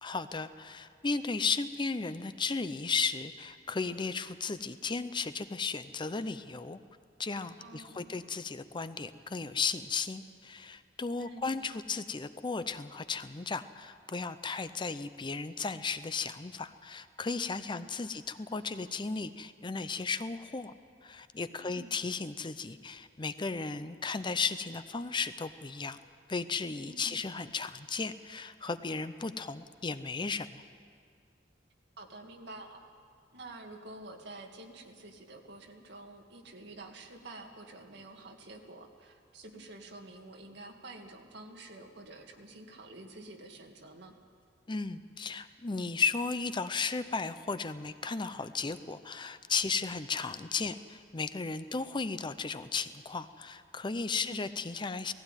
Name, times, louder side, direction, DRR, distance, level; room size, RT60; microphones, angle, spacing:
voice 1, 0.0-6.8 7.2-20.7 21.0-26.0 26.3-30.6 44.7-55.1, left 4 dB, 25° left, 12 dB, 0.6 m, -35 dB
voice 2, 7.6-8.1 11.2-11.6 17.7-18.2 21.6-22.0 26.9-27.2 32.0-32.8 33.3-44.1 54.2-54.5, right 2 dB, 65° right, 2 dB, 2.1 m, -49 dB
18.5 x 16.0 x 9.0 m, 2.2 s
head